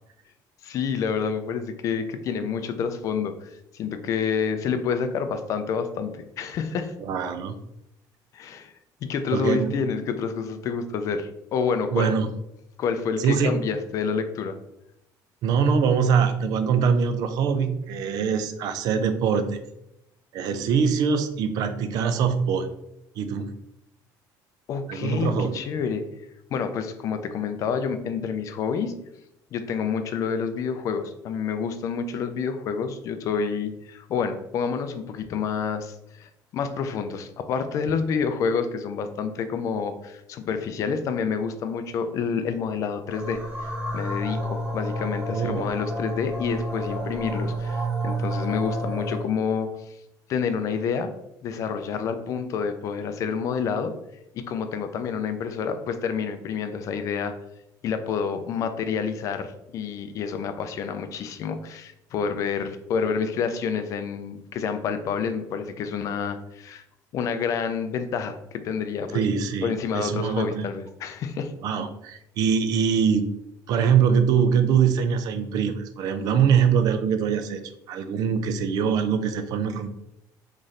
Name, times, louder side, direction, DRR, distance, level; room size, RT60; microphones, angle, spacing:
voice 1, 0.6-6.9 8.3-8.7 9.0-12.2 12.8-14.6 24.7-26.0 26.5-28.9 29.5-49.9 50.3-51.1 51.4-53.9 54.3-57.3 57.8-66.8 67.1-69.2 69.6-71.5, left 6 dB, 45° left, 9 dB, 0.4 m, -28 dB
voice 2, 7.0-7.6 9.3-9.7 11.9-12.3 13.2-13.5 15.4-19.6 20.3-22.7 23.2-23.5 24.9-25.6 45.3-45.7 69.1-70.7 71.6-73.3 73.7-77.6 77.9-79.9, right 6 dB, 55° right, 10 dB, 0.4 m, -23 dB
sound 1, 43.1-49.3, right 1 dB, 15° right, 0.9 m, -30 dB
3.1 x 2.5 x 4.0 m, 0.82 s
cardioid pair, 165°, 8 cm